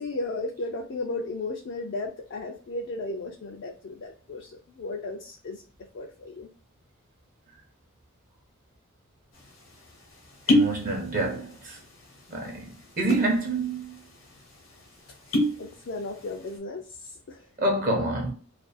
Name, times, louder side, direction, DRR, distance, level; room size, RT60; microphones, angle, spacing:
voice 1, 0.0-5.6 5.9-6.5 15.6-17.5, left 2 dB, 60° left, 0.4 m, -35 dB
sound 1, 9.4-9.5 10.3-10.8 11.1-11.7 12.0-12.2 12.9-13.4 13.8-13.9 14.2-14.4 15.1-15.6 16.1-16.4, left 1 dB, 75° left, 0.9 m, -24 dB
voice 2, 10.5-11.8 12.3-14.0 17.6-18.3, right 2 dB, 45° right, 0.6 m, -27 dB
2.5 x 2.3 x 2.5 m
head